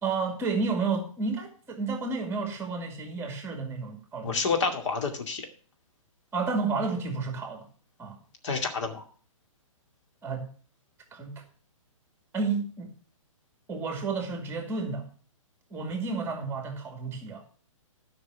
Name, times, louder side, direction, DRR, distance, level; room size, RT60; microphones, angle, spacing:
voice 1, 0.0-4.4 6.3-7.7 8.0-8.2 10.2-10.5 11.1-11.4 12.3-12.9 13.7-15.1 15.7-17.5, right 4 dB, 15° right, 2.2 m, -31 dB
voice 2, 4.2-5.5 8.4-9.0, left 4 dB, 60° left, 2.4 m, -29 dB
11.5 x 5.9 x 6.1 m
hypercardioid pair, 130°, 17 cm